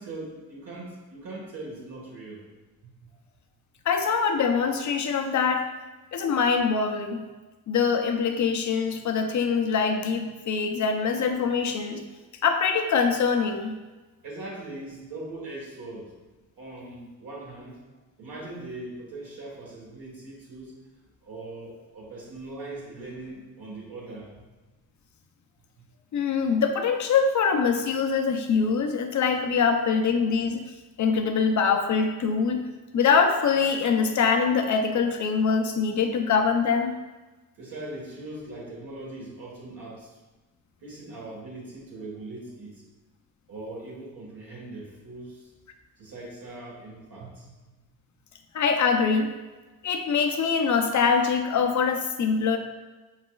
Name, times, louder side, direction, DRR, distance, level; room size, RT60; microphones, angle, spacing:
voice 1, 0.0-2.4 14.2-16.1 16.6-17.8 18.2-20.7 21.2-24.3 37.6-40.1 40.8-42.8 43.5-45.5 46.0-47.5, right 2 dB, 60° right, -5 dB, 1.4 m, -40 dB
voice 2, 3.9-5.7 6.1-7.2 7.7-12.0 12.4-13.7 26.1-30.6 31.0-32.6 32.9-36.9 48.5-49.3 49.8-52.6, left 5 dB, 45° left, 4 dB, 0.6 m, -23 dB
4.7 x 4.0 x 2.3 m, 1.2 s
cardioid pair, 70°, 39 cm